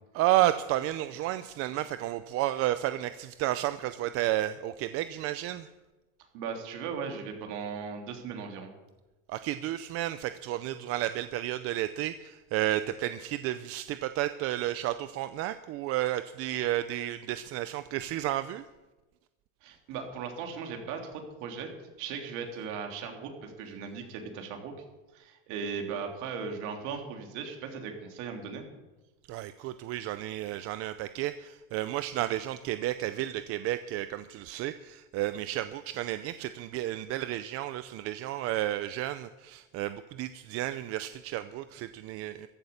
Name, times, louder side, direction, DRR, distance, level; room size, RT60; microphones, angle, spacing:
voice 1, 0.1-5.7 9.3-18.6 29.3-42.5, right 14 dB, 45° right, 12 dB, 0.6 m, -32 dB
voice 2, 6.3-8.7 19.6-21.7 22.0-24.7 25.1-28.6, right 6 dB, 60° right, 3 dB, 3.2 m, -38 dB
15.0 x 11.5 x 7.1 m, 1.1 s
cardioid pair, 155°, 34 cm